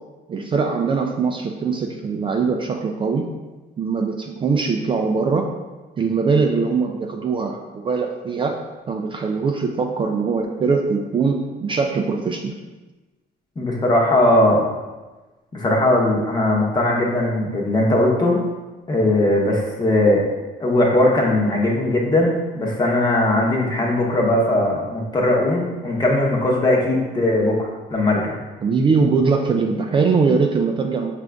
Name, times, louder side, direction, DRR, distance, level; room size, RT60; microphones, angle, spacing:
voice 1, 0.3-3.3 3.8-5.5 6.0-8.6 8.9-12.5 28.6-31.1, right 4 dB, 30° right, 2 dB, 0.3 m, -21 dB
voice 2, 13.6-14.7 15.5-18.4 18.9-20.2 20.6-28.4, left 1 dB, 25° left, -2 dB, 0.9 m, -19 dB
5.0 x 2.5 x 3.4 m, 1.2 s
cardioid pair, 110°, 17 cm